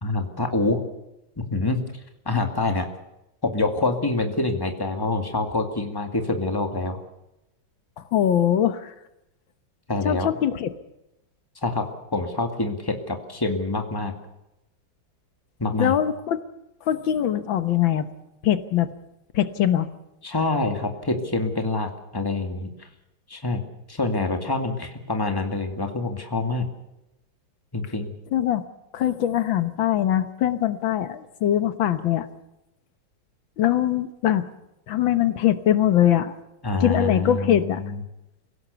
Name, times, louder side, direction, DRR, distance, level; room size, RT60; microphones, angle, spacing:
voice 1, 0.0-0.8 1.4-1.8 2.3-2.9 3.4-7.0 9.9-10.3 11.6-14.1 15.6-15.9 20.2-22.7 23.3-23.6 23.9-26.7 27.7-28.1 36.6-37.9, left 2 dB, 10° left, 5 dB, 2.1 m, -26 dB
voice 2, 8.0-8.9 10.1-10.7 15.8-16.4 16.8-18.1 18.4-18.9 19.3-19.9 28.3-28.7 28.9-32.3 33.6-34.5 34.9-36.3 36.8-37.8, left 11 dB, 85° left, 11 dB, 1.9 m, -22 dB
24.0 x 17.0 x 6.9 m, 0.88 s
omnidirectional pair, 2.1 m